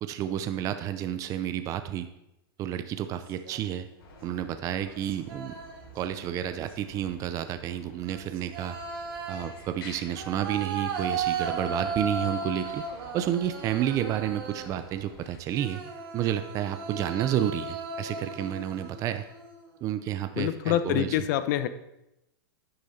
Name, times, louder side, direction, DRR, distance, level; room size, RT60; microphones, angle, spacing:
voice 1, 0.0-2.1 2.6-3.9 4.2-5.5 5.9-8.8 9.3-12.8 13.1-15.8 16.1-19.2 19.8-21.2, right 11 dB, 25° right, 10 dB, 0.6 m, -30 dB
sound 1, 3.0-3.8 4.8-6.0 6.4-7.0 8.0-14.9 15.5-19.8, right 4 dB, 70° right, 2.3 m, -36 dB
sound 2, 4.0-15.4, left 1 dB, 80° left, 3.3 m, -50 dB
voice 2, 20.4-21.7, left 12 dB, 50° left, 12 dB, 0.9 m, -26 dB
9.7 x 9.6 x 4.2 m, 0.88 s
supercardioid pair, 150°, 13 cm